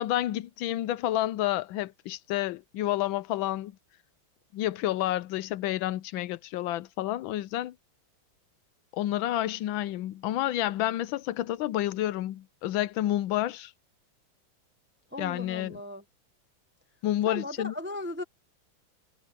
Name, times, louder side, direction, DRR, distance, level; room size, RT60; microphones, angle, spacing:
voice 1, 0.0-3.7 4.5-7.7 8.9-13.7 15.2-15.8 17.0-17.7, left 14 dB, 80° left, 1.4 m, -29 dB
voice 2, 15.1-16.0 17.2-18.2, left 2 dB, 15° right, 0.4 m, -37 dB
omnidirectional pair, 2.1 m